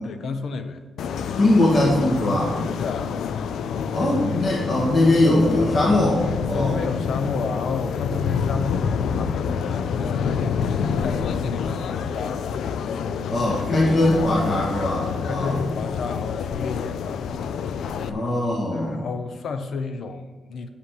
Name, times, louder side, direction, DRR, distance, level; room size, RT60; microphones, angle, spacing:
voice 1, 0.0-0.8 2.8-3.1 6.5-10.7 11.0-12.4 12.8-13.4 15.1-17.3 17.9-18.3 18.7-20.7, left 4 dB, 60° left, 8 dB, 0.9 m, -31 dB
sound 1, 1.0-18.1, left 6 dB, 85° left, 0.5 m, -27 dB
voice 2, 1.4-2.6 3.9-6.8 13.3-15.6 18.1-19.0, left 1 dB, 45° left, -4 dB, 1.8 m, -21 dB
8.5 x 5.7 x 7.7 m, 1.3 s
wide cardioid pair, 155°, 0 cm